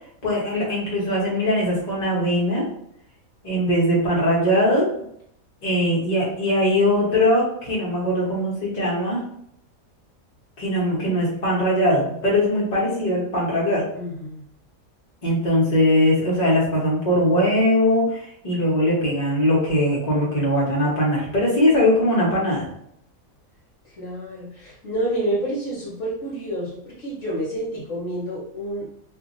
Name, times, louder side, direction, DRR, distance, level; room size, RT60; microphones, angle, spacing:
voice 1, 0.2-2.7 3.4-4.9 5.6-9.2 10.6-13.8 15.2-22.6, left 1 dB, 30° left, -5 dB, 1.0 m, -21 dB
voice 2, 5.9-6.3 13.9-14.4 23.8-28.9, right 1 dB, 60° left, -7 dB, 1.2 m, -29 dB
2.7 x 2.5 x 2.5 m, 0.71 s
omnidirectional pair, 1.5 m